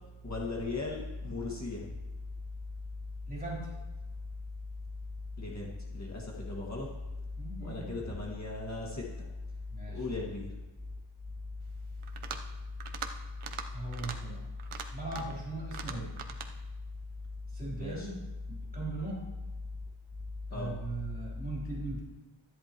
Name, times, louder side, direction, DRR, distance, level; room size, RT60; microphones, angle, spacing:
voice 1, 0.2-1.8 5.4-6.9 7.6-9.3 9.9-10.5 17.8-18.1 20.5-20.7, left 3 dB, 35° left, -3 dB, 1.9 m, -37 dB
voice 2, 3.3-3.7 7.4-7.9 9.7-10.1 13.7-14.5 14.9-16.1 17.5-19.3 20.5-22.0, right 3 dB, 15° right, -5 dB, 3.5 m, -39 dB
sound 1, 12.0-12.5 12.8-13.1 13.4-13.7 13.9-14.2 14.6-15.4 15.7-16.5, right 7 dB, 75° right, 1.0 m, -41 dB
13.5 x 10.5 x 3.0 m, 1.1 s
wide cardioid pair, 115°, 49 cm